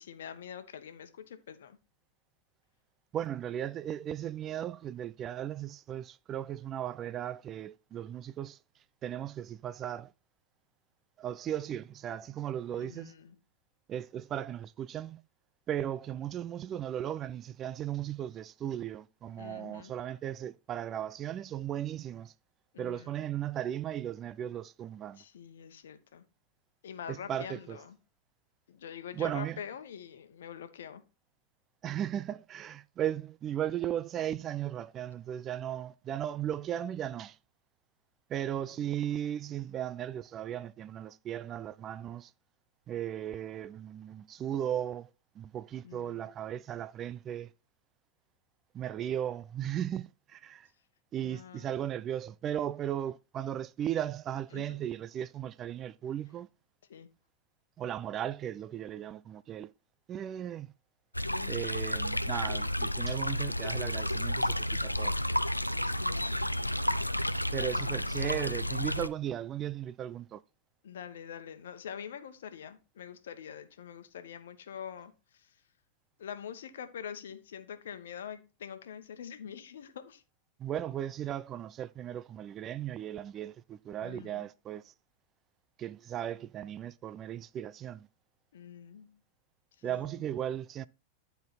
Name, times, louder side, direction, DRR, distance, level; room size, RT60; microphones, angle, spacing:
voice 1, 0.0-1.8 12.7-13.4 19.4-19.9 22.7-23.2 25.2-26.2 26.8-28.0 28.7-31.0 38.5-38.9 45.8-46.3 51.2-51.7 54.5-54.8 56.9-57.1 61.3-61.6 65.8-66.5 67.7-68.4 70.8-75.6 76.2-80.2 84.0-84.5 88.5-89.2 89.8-90.2, left 8 dB, 60° left, 1.1 m, -45 dB
voice 2, 3.1-8.6 9.0-10.1 11.2-13.1 13.9-15.2 15.7-22.3 22.8-25.2 27.1-27.8 29.2-29.6 31.8-37.4 38.3-42.3 42.9-45.1 45.4-47.5 48.7-50.7 51.1-56.5 57.8-59.7 60.1-60.7 61.5-65.2 67.5-70.4 80.6-84.9 85.8-88.1 89.8-90.9, right 10 dB, 30° right, 0.4 m, -36 dB
sound 1, 61.1-69.1, left 1 dB, 90° left, 0.4 m, -31 dB
10.5 x 4.6 x 4.2 m
figure-of-eight pair, 90°, 0 cm